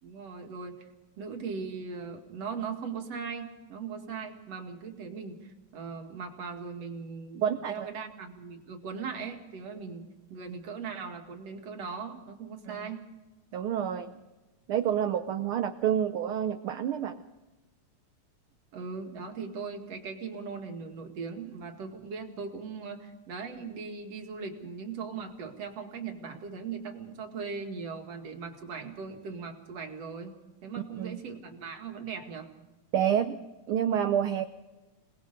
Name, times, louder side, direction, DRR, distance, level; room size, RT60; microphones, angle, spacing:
voice 1, 0.0-0.8 1.2-13.0 18.7-32.5, right 5 dB, 60° right, 3 dB, 3.1 m, -39 dB
voice 2, 7.4-7.9 12.7-12.8 13.5-14.1 14.7-17.2 31.0-31.2 32.9-33.4 33.7-34.5, right 9 dB, 75° right, 10 dB, 1.2 m, -28 dB
27.0 x 19.5 x 5.3 m, 1.1 s
omnidirectional pair, 3.4 m